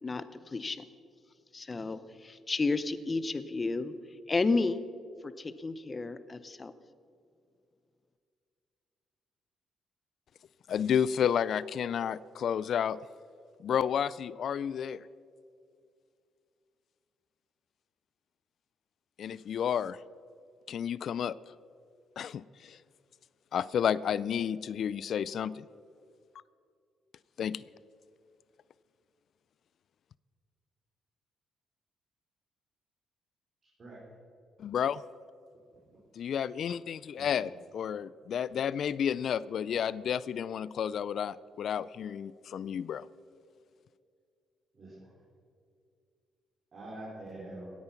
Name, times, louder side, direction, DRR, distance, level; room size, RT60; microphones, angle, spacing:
voice 1, 0.0-0.9 1.5-3.9 4.3-4.8 5.2-6.7, left 3 dB, 30° left, 14 dB, 0.7 m, -32 dB
voice 2, 10.7-13.0 13.6-15.0 19.2-20.0 20.7-21.3 22.2-22.8 23.5-25.6 27.4-27.6 34.6-35.0 36.2-43.0, left 8 dB, 65° left, 20 dB, 0.3 m, -31 dB
voice 3, 37.1-37.6 44.7-45.1 46.7-47.7, right 1 dB, 45° right, -7 dB, 4.2 m, -45 dB
17.0 x 9.6 x 5.8 m, 2.3 s
cardioid pair, 90°, 0 cm